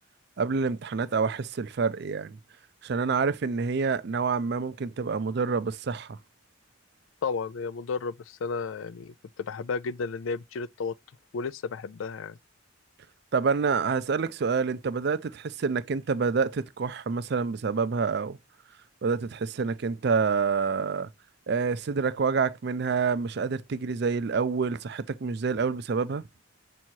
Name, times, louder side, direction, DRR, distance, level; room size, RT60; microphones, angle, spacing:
voice 1, 0.4-2.4 2.8-6.2 13.3-18.4 19.0-21.1 21.5-26.2, right 5 dB, 60° right, 0.4 m, -27 dB
voice 2, 7.2-10.9 11.3-12.4, left 5 dB, 85° left, 0.4 m, -33 dB
7.0 x 3.0 x 4.5 m
head